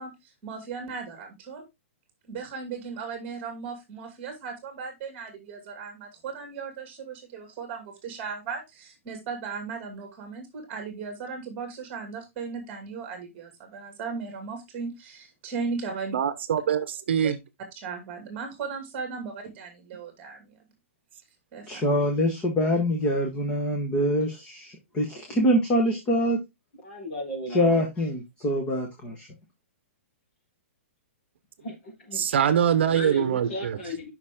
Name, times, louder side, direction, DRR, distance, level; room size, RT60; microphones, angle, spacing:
voice 1, 0.0-1.7 2.3-16.1 17.2-17.3 17.8-20.6 21.5-21.8, right 5 dB, 20° right, 2.4 m, -37 dB
voice 2, 16.1-17.3 32.2-33.8, right 8 dB, 55° right, 0.9 m, -23 dB
voice 3, 21.7-24.6 24.9-26.4 27.5-28.8, equal, 15° left, 1.2 m, -24 dB
voice 4, 26.8-27.9 31.6-32.3 32.9-34.1, left 1 dB, 50° left, 4.3 m, -35 dB
7.2 x 5.8 x 3.6 m
hypercardioid pair, 175°, 7 cm